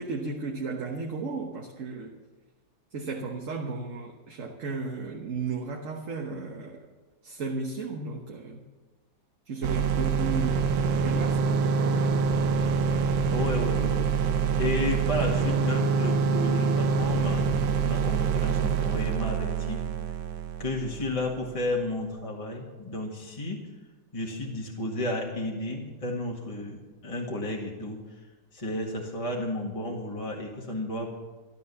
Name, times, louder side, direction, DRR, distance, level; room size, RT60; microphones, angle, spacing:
voice 1, 0.0-2.1 2.9-6.8 7.2-8.6 9.5-12.1, right 4 dB, 45° right, 1 dB, 1.4 m, -34 dB
sound 1, 9.6-21.5, right 5 dB, 75° right, 1.5 m, -26 dB
voice 2, 13.2-14.1 14.5-19.8 20.6-23.6 24.1-28.0 28.5-31.1, left 1 dB, 20° left, -2 dB, 1.7 m, -32 dB
13.5 x 11.5 x 6.9 m, 1.3 s
omnidirectional pair, 2.0 m